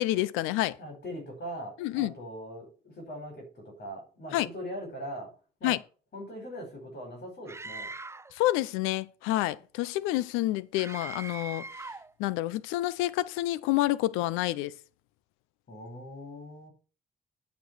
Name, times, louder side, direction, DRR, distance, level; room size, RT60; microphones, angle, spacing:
voice 1, 0.0-0.8 1.8-2.1 4.3-4.5 5.6-5.8 8.3-11.8 12.2-14.8, left 16 dB, 90° left, 0.6 m, -28 dB
voice 2, 0.8-5.3 5.6-5.7 6.1-7.9 15.7-16.7, equal, 55° left, 5.0 m, -41 dB
Screaming, 7.5-8.3 10.8-12.1, right 3 dB, 15° right, 0.5 m, -41 dB
9.1 x 5.4 x 6.2 m
supercardioid pair, 60°, 20 cm